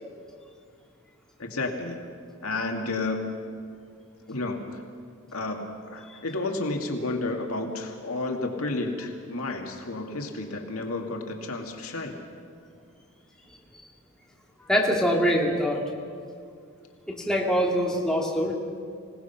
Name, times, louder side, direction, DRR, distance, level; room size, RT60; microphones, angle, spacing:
voice 1, 1.4-2.0 2.4-3.2 4.3-4.8 5.3-12.2, left 2 dB, 80° left, 3 dB, 2.1 m, -31 dB
voice 2, 14.7-15.8 17.1-18.5, equal, 5° left, -2 dB, 2.6 m, -24 dB
26.0 x 18.0 x 5.8 m, 2.2 s
head